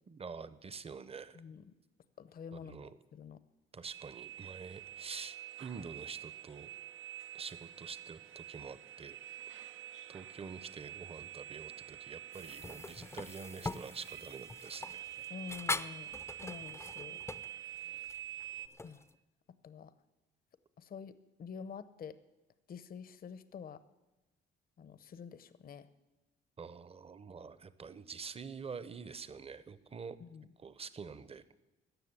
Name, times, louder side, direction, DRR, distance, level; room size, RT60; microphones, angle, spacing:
voice 1, 0.1-1.4 2.5-3.0 3.7-6.7 7.3-9.2 10.1-15.1 26.6-30.2 30.6-31.5, right 5 dB, 30° right, 15 dB, 0.8 m, -46 dB
voice 2, 1.3-1.7 2.2-3.4 15.3-16.2 16.4-17.2 18.8-19.0 19.6-19.9 20.8-22.2 22.7-23.8 24.8-25.9 30.2-30.5, left 6 dB, 50° left, 14 dB, 0.7 m, -48 dB
sound 1, 3.9-18.7, right 11 dB, 80° right, 0.8 m, -47 dB
sound 2, 12.3-19.1, left 3 dB, 15° left, 0.5 m, -43 dB
15.0 x 6.4 x 9.7 m, 1.1 s
cardioid pair, 90°, 20 cm